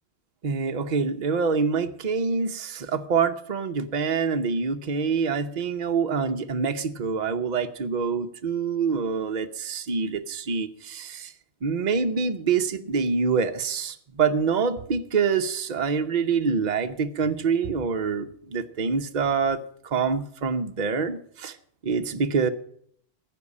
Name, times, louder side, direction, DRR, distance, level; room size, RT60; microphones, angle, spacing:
voice 1, 0.4-11.3 11.6-21.6 21.8-22.5, right 5 dB, 40° right, 6 dB, 0.8 m, -26 dB
15.0 x 5.4 x 8.5 m, 0.63 s
omnidirectional pair, 1.3 m